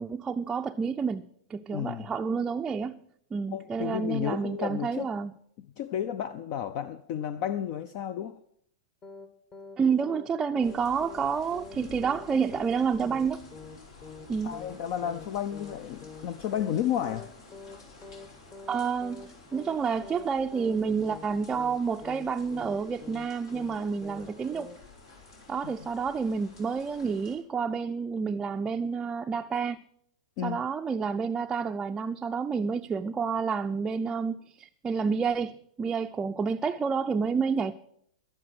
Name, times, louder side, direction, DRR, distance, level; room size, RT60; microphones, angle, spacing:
voice 1, 0.0-3.0 3.3-5.3 9.8-13.4 14.3-14.6 18.7-24.7 25.5-29.8 30.4-37.7, right 5 dB, 15° right, 0.4 m, -29 dB
voice 2, 1.7-2.1 3.5-5.1 5.6-8.4 14.4-17.3 25.6-25.7 30.4-30.6, left 10 dB, 50° left, 0.6 m, -32 dB
sound 1, 9.0-9.3 9.5-9.8 10.0-10.3 10.5-10.8 11.0-11.3 11.5-11.8 12.0-12.3 12.5-12.8 13.0-13.3 13.5-13.8 14.0-14.3 14.5-14.8 15.0-15.3 15.5-15.8 16.0-16.3 16.5-16.8 17.0-17.3 17.5-17.8 18.0-18.3 18.5-18.8 19.0-19.3 19.5-19.8 20.0-20.3 20.5-20.8 21.0-21.3 21.5-21.8 22.0-22.3 22.5-22.8 23.0-23.3 23.5-23.8 24.0-24.3 24.5-24.8, left 4 dB, 30° left, 1.4 m, -45 dB
sound 2, 10.6-27.4, left 3 dB, 70° left, 4.5 m, -51 dB
11.5 x 11.0 x 6.2 m
hypercardioid pair, 115°, 3 cm